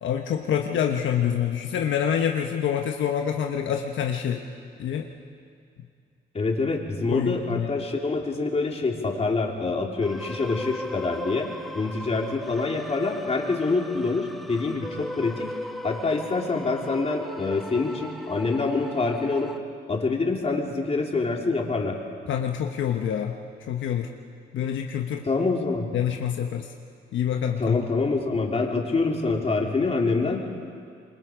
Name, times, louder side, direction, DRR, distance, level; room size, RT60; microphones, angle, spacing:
voice 1, 0.0-4.4 4.8-5.1 7.1-7.7 22.3-23.4 23.7-24.1 24.5-25.2 25.9-26.7 27.1-27.8, left 9 dB, 75° left, 3 dB, 1.3 m, -26 dB
voice 2, 6.3-11.5 11.7-15.5 15.8-19.5 19.9-22.0 25.2-25.9 27.6-30.5, left 3 dB, 30° left, 0 dB, 3.3 m, -26 dB
sound 1, 10.0-19.6, equal, ahead, 1.2 m, -38 dB
26.5 x 23.5 x 5.1 m, 2.3 s
cardioid pair, 90°, 20 cm